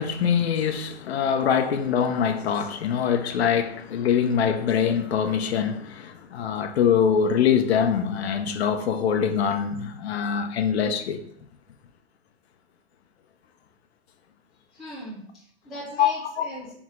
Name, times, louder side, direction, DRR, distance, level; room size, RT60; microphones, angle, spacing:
voice 1, 0.0-11.2 16.0-16.1 16.4-16.5, left 7 dB, 70° left, 0.7 m, -23 dB
voice 2, 14.7-16.8, equal, ahead, 0.3 m, -39 dB
4.0 x 3.5 x 3.1 m
hypercardioid pair, 165°, 33 cm